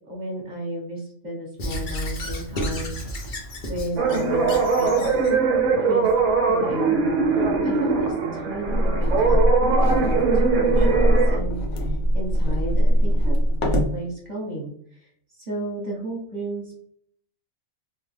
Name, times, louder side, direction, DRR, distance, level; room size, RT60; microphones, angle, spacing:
voice 1, 0.1-3.1 3.7-5.1 5.7-6.1 6.3-7.0 7.3-9.4 9.8-13.4 13.6-15.1 15.4-16.7, right 1 dB, 35° right, -4 dB, 1.1 m, -33 dB
Squeak / Writing, 1.6-5.4, equal, 50° left, 0.6 m, -32 dB
sound 1, 4.0-11.4, right 4 dB, 65° right, 0.9 m, -21 dB
sound 2, 8.6-14.0, equal, 75° left, 1.1 m, -21 dB
2.9 x 2.1 x 3.2 m, 0.64 s
omnidirectional pair, 1.5 m